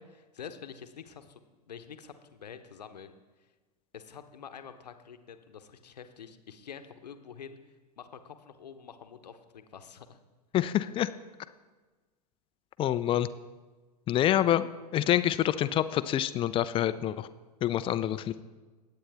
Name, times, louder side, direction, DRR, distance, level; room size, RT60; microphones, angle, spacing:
voice 1, 0.0-1.4 1.7-3.1 3.9-7.6 8.0-10.2, left 7 dB, 75° left, 8 dB, 1.0 m, -47 dB
voice 2, 10.5-11.1 12.8-13.3 14.1-17.3 17.6-18.4, left 12 dB, 25° left, 14 dB, 0.5 m, -27 dB
20.0 x 8.7 x 3.5 m, 1.3 s
figure-of-eight pair, 90°, 21 cm